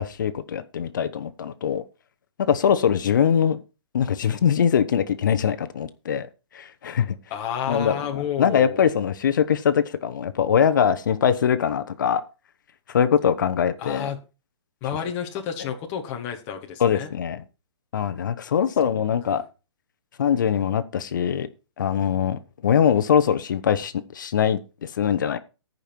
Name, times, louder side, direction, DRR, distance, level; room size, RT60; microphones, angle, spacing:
voice 1, 0.0-1.8 2.4-3.6 3.9-6.3 6.5-7.1 7.7-12.2 12.9-14.1 16.8-17.4 17.9-19.4 20.2-21.5 21.8-25.4, left 8 dB, 40° left, 0.8 m, -22 dB
voice 2, 7.3-8.8 13.8-14.2 14.8-17.1 19.3-19.4, left 8 dB, 15° left, 1.0 m, -30 dB
14.5 x 5.3 x 4.4 m
hypercardioid pair, 175°, 15 cm